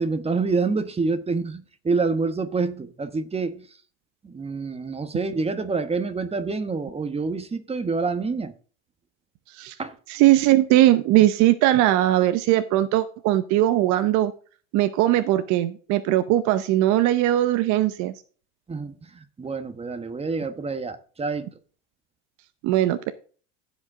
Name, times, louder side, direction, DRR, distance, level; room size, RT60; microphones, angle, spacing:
voice 1, 0.0-3.7 4.2-8.5 9.8-9.9 18.7-19.1 19.4-21.5, right 4 dB, 15° right, 1.2 m, -27 dB
voice 2, 10.1-14.3 14.7-18.1 22.6-23.1, right 14 dB, 55° right, 0.8 m, -20 dB
16.0 x 5.3 x 3.7 m
supercardioid pair, 100°, 35 cm